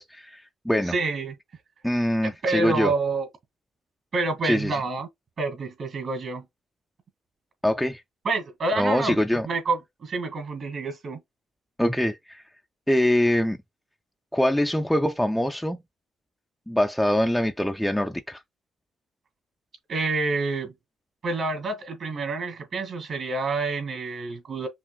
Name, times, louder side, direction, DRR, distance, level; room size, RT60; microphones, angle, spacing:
voice 1, 0.0-0.9 1.8-2.9 4.4-4.8 7.6-8.0 8.8-9.5 11.8-12.4 12.9-13.6 14.3-15.8 16.7-18.4, equal, 5° left, 0.3 m, -24 dB
voice 2, 0.9-1.3 2.2-3.3 4.1-5.1 5.4-6.5 8.2-9.2 9.5-11.2 19.9-20.7 21.2-24.7, right 3 dB, 55° right, 2.1 m, -28 dB
5.6 x 2.4 x 2.2 m
cardioid pair, 90°, 0 cm